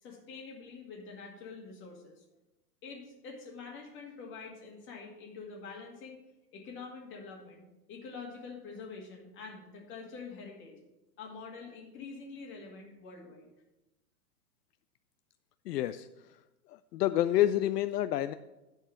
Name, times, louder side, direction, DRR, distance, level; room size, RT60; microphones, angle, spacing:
voice 1, 0.0-2.2 2.8-6.2 6.5-7.6 7.9-10.8 11.2-13.5, left 4 dB, 25° left, 0 dB, 2.1 m, -46 dB
voice 2, 15.7-16.1 16.9-18.3, left 13 dB, 70° left, 11 dB, 0.6 m, -28 dB
11.0 x 4.6 x 7.2 m, 1.0 s
hypercardioid pair, 145°, 50 cm